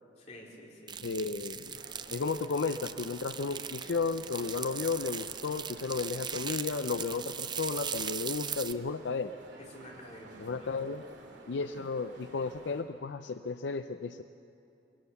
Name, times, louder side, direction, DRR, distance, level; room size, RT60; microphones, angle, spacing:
voice 1, 0.2-1.0 9.6-10.9, left 1 dB, 40° left, -2 dB, 3.7 m, -50 dB
sound 1, 0.9-8.7, right 8 dB, 25° right, 0.5 m, -39 dB
voice 2, 1.0-1.8 2.1-9.3 10.4-11.0 11.5-14.2, left 4 dB, 75° left, 10 dB, 0.5 m, -33 dB
sound 2, 1.7-12.8, right 2 dB, 80° right, 2.5 m, -52 dB
22.5 x 17.5 x 7.1 m, 2.8 s
head